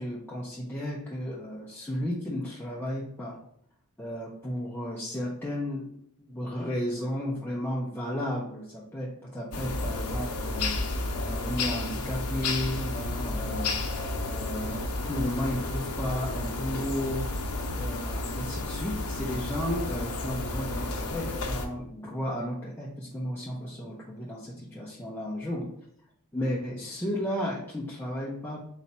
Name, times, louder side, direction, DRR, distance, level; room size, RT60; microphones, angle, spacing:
voice 1, 0.0-3.4 4.0-10.8 11.3-13.8 14.3-17.3 17.8-25.7 26.3-28.6, equal, 10° left, -6 dB, 0.6 m, -33 dB
sound 1, 9.5-21.7, left 2 dB, 75° left, 0.6 m, -32 dB
4.1 x 2.4 x 4.1 m, 0.70 s
head